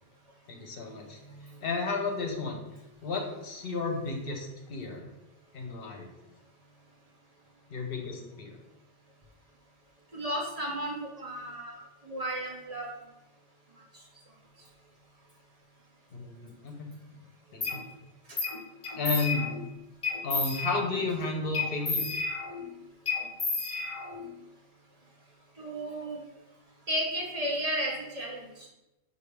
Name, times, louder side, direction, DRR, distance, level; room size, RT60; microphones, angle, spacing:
voice 1, 0.5-1.2 1.6-2.6 3.0-5.0 5.5-6.1 7.7-8.6 16.1-16.9 17.5-17.8 19.0-19.5 20.2-22.1, left 3 dB, 65° left, 1 dB, 0.9 m, -32 dB
voice 2, 10.1-12.9 25.6-26.2 26.9-28.7, right 1 dB, 40° right, -2 dB, 0.7 m, -33 dB
sound 1, 17.6-17.8 18.4-18.6 18.8-19.6 20.0-21.0 21.5-22.7 23.1-24.3, left 4 dB, 35° left, 0.7 m, -31 dB
4.9 x 2.6 x 3.3 m, 0.93 s
omnidirectional pair, 1.0 m